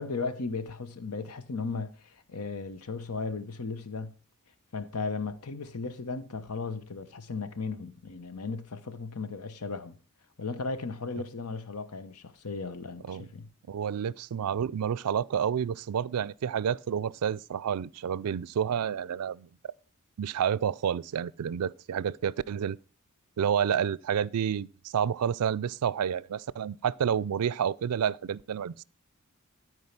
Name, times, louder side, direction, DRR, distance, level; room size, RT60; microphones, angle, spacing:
voice 1, 0.0-4.1 4.7-10.0 10.4-13.5, left 4 dB, 80° left, 1.0 m, -36 dB
voice 2, 13.7-19.5 20.2-22.8 23.4-28.8, right 8 dB, 80° right, 0.4 m, -29 dB
13.0 x 4.7 x 5.8 m
head